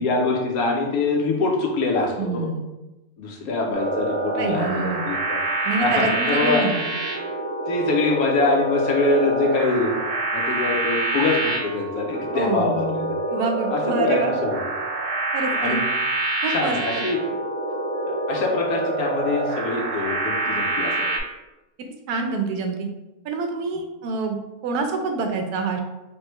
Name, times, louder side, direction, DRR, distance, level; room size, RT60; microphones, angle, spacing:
voice 1, 0.0-2.5 3.2-5.4 5.8-6.7 7.7-10.0 10.3-12.9 13.7-14.6 15.5-15.9 16.5-17.2 18.1-21.1, left 3 dB, 70° left, 0 dB, 1.2 m, -24 dB
voice 2, 2.2-2.6 4.4-5.0 5.6-6.8 12.3-13.1 13.3-14.3 15.3-15.8 16.4-17.0 22.1-22.9 23.2-24.4 24.6-25.8, right 3 dB, 85° right, 4 dB, 1.2 m, -26 dB
sound 1, 3.7-21.2, right 2 dB, 65° right, 0.9 m, -26 dB
3.5 x 3.3 x 3.0 m, 1.0 s
omnidirectional pair, 1.6 m